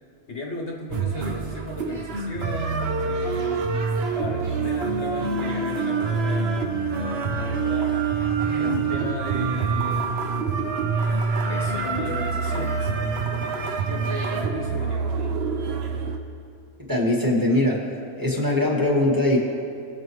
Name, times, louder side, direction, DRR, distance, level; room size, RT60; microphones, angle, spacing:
voice 1, 0.3-3.8 4.1-8.0 8.6-10.3 11.5-15.3, left 3 dB, 60° left, 1 dB, 1.2 m, -35 dB
sound 1, 0.9-16.2, right 5 dB, 55° right, 0.9 m, -26 dB
sound 2, 5.2-14.4, right 5 dB, 75° right, 2.1 m, -36 dB
voice 2, 16.9-17.8 18.1-19.4, left 1 dB, 15° right, -2 dB, 1.5 m, -21 dB
20.0 x 6.9 x 3.1 m, 2.5 s
omnidirectional pair, 1.4 m